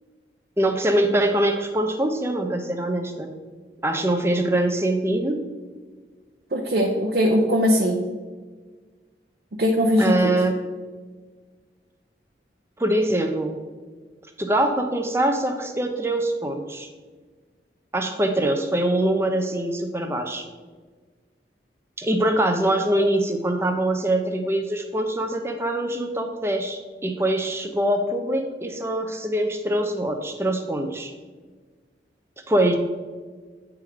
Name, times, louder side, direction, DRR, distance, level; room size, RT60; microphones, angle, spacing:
voice 1, 0.6-3.3 3.8-5.4 10.0-10.6 12.8-13.6 14.4-16.9 17.9-20.4 22.0-31.1 32.5-32.8, right 1 dB, 15° right, 5 dB, 0.6 m, -23 dB
voice 2, 6.5-8.0 9.6-10.3, equal, 55° right, 0 dB, 0.7 m, -20 dB
9.0 x 3.6 x 4.9 m, 1.4 s
head